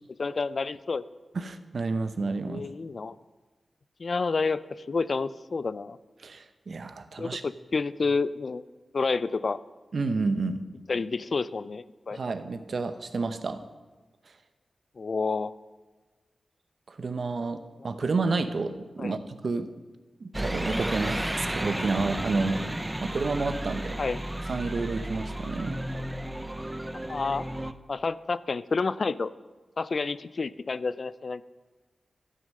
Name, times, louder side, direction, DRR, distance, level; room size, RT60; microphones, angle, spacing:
voice 1, 0.2-1.0 2.5-3.2 4.0-4.6 4.9-6.0 7.2-8.6 8.9-9.6 10.9-12.2 15.0-15.5 19.0-19.2 24.0-24.2 27.1-27.4 27.9-29.3 29.8-31.4, left 4 dB, 60° left, 16 dB, 0.4 m, -29 dB
voice 2, 1.3-2.6 6.2-7.4 9.9-10.6 12.1-13.6 16.9-19.2 19.4-19.7 20.2-22.6 23.0-24.0 24.5-25.8, right 3 dB, 65° right, 10 dB, 0.8 m, -30 dB
sound 1, 20.3-27.7, right 1 dB, 15° right, 0.6 m, -33 dB
12.5 x 6.3 x 6.5 m, 1.3 s
cardioid pair, 50°, 0 cm